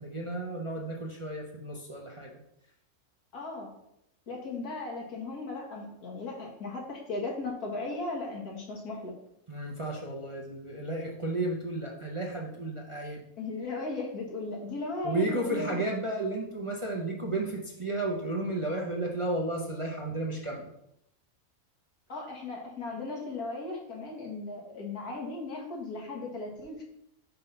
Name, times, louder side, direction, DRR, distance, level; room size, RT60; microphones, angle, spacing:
voice 1, 0.0-2.3 9.5-13.2 15.0-20.7, right 2 dB, 30° right, -1 dB, 0.6 m, -33 dB
voice 2, 3.3-3.7 4.3-9.1 13.4-15.8 22.1-26.8, left 3 dB, 85° left, -1 dB, 2.0 m, -37 dB
5.3 x 4.0 x 5.5 m, 0.79 s
omnidirectional pair, 1.6 m